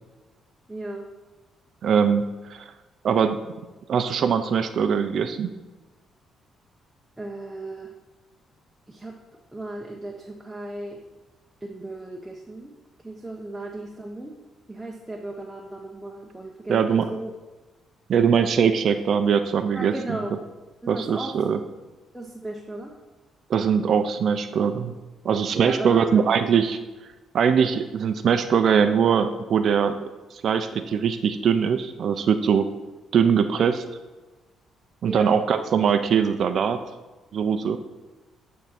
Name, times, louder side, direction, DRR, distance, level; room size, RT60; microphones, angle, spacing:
voice 1, 0.7-1.1 7.2-7.9 8.9-9.2 9.5-11.0 11.6-12.7 13.0-14.4 14.7-17.3 19.7-20.3 20.8-21.4 22.1-22.9 25.5-26.3 35.1-35.4, right 2 dB, 10° right, 0 dB, 0.9 m, -35 dB
voice 2, 1.8-2.6 3.0-3.4 3.9-5.5 16.7-17.1 18.1-20.2 20.9-21.6 23.5-24.9 25.2-26.8 27.3-29.9 30.3-32.6 33.1-33.8 35.0-36.8 37.3-37.8, right 7 dB, 60° right, 9 dB, 0.5 m, -21 dB
9.2 x 3.7 x 5.8 m, 1.2 s
cardioid pair, 90°, 0 cm